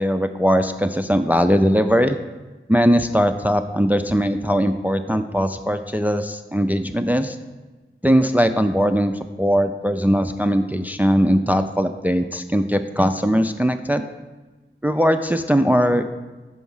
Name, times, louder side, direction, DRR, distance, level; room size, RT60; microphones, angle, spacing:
voice 1, 0.0-2.2 2.7-7.4 8.0-14.0 14.8-16.0, equal, 10° right, 8 dB, 0.3 m, -20 dB
6.2 x 4.7 x 5.5 m, 1.2 s
wide cardioid pair, 50°, 21 cm